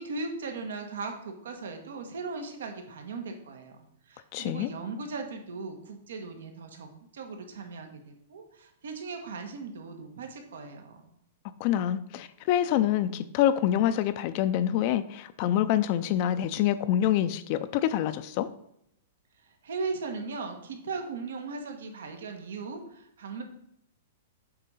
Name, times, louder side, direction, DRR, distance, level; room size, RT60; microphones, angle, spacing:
voice 1, 0.0-3.7 4.1-6.9 7.1-11.1 19.6-23.4, right 4 dB, 80° right, 5 dB, 1.2 m, -38 dB
voice 2, 4.3-4.7 11.6-18.5, left 11 dB, 45° left, 12 dB, 0.4 m, -26 dB
7.8 x 3.7 x 5.5 m, 0.75 s
hypercardioid pair, 140°, 0 cm